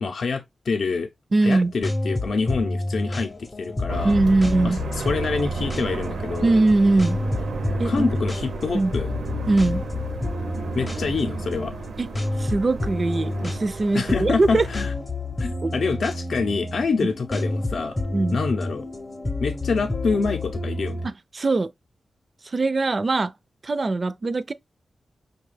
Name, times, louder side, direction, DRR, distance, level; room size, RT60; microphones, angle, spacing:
voice 1, 0.0-1.1 1.4-4.2 4.6-6.5 7.8-9.1 10.8-11.7 13.9-14.9 15.4-18.0 18.3-18.9 19.4-21.1, left 4 dB, 70° left, 0.6 m, -26 dB
voice 2, 1.3-1.7 4.0-4.8 6.4-7.2 7.8-8.1 8.7-8.9 9.5-9.8 12.0-12.1 12.4-14.7 15.6-15.7 18.1-18.4 21.0-21.7 22.5-23.3 23.6-24.5, right 2 dB, 40° right, 0.4 m, -21 dB
sound 1, 1.4-21.1, left 2 dB, 25° left, 0.6 m, -30 dB
sound 2, 3.9-14.8, right 4 dB, 85° right, 0.6 m, -33 dB
5.4 x 2.3 x 3.2 m
wide cardioid pair, 100°, 0 cm